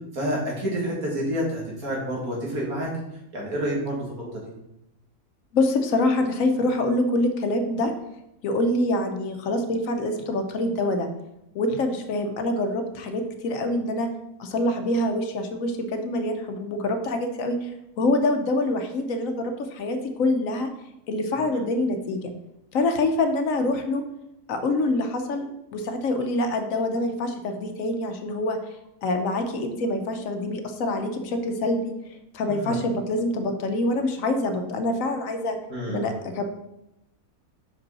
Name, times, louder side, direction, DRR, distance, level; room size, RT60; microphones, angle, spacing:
voice 1, 0.1-2.9 3.3-4.3 32.5-32.8 35.7-36.1, equal, 80° right, -3 dB, 2.2 m, -28 dB
voice 2, 5.5-7.9 8.4-11.1 11.5-14.1 14.4-17.7 18.0-20.7 21.1-22.3 22.7-24.0 24.5-25.5 25.7-28.6 29.0-31.9 32.3-35.6 35.9-36.4, left 2 dB, 70° left, 7 dB, 1.1 m, -25 dB
5.5 x 5.2 x 4.1 m, 0.85 s
omnidirectional pair, 1.5 m